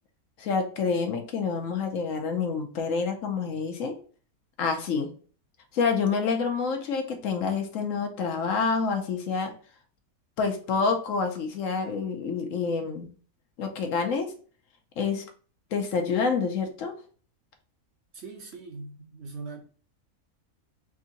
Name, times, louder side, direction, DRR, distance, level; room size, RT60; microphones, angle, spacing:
voice 1, 0.4-3.9 4.6-5.1 5.7-9.5 10.4-13.1 13.6-14.3 15.0-15.2 15.7-16.9, left 5 dB, 65° left, 1.1 m, -27 dB
voice 2, 18.1-19.6, right 4 dB, 55° right, 1.0 m, -41 dB
3.6 x 2.6 x 3.9 m
omnidirectional pair, 1.5 m